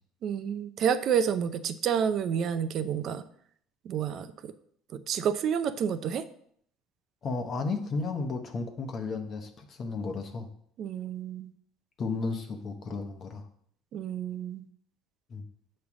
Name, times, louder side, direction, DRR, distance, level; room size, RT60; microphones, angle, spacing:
voice 1, 0.2-3.2 3.9-4.5 5.1-6.2 10.8-11.5 13.9-14.6, right 8 dB, 55° right, 11 dB, 0.5 m, -29 dB
voice 2, 7.2-10.5 12.0-13.4 15.3-15.5, left 4 dB, 40° left, 5 dB, 1.0 m, -33 dB
7.0 x 3.2 x 6.1 m, 0.64 s
supercardioid pair, 105°, 0 cm